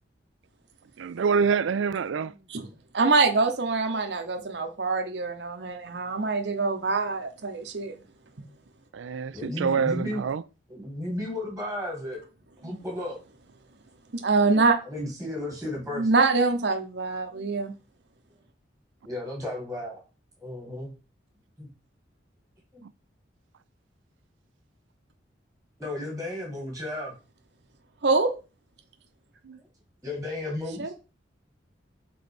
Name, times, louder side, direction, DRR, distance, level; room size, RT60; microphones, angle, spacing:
voice 1, 1.0-2.3 8.9-10.4 29.4-29.6, right 5 dB, 85° right, 0.4 m, -26 dB
voice 2, 2.9-8.0 14.1-14.8 16.0-17.7 28.0-28.3 30.8-30.9, right 3 dB, 65° right, 0.8 m, -24 dB
voice 3, 4.0-4.4 9.3-10.2 10.7-12.2 12.6-13.2 14.8-16.1 17.3-17.5 19.1-20.0 20.4-20.9 22.7-22.8 25.8-27.1 29.5-29.6 30.0-30.9, left 1 dB, 5° right, 1.9 m, -34 dB
6.0 x 3.8 x 5.2 m
head